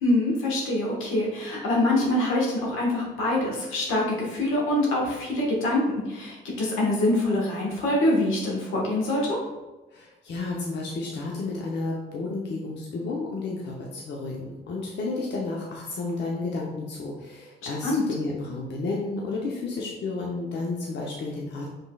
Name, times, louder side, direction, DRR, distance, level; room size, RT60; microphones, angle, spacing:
voice 1, 0.0-9.4 17.8-18.1, left 1 dB, 90° left, -3 dB, 1.4 m, -25 dB
voice 2, 9.9-21.7, left 3 dB, 60° left, -2 dB, 0.8 m, -32 dB
5.2 x 3.8 x 2.3 m, 1.1 s
cardioid pair, 90°, 20 cm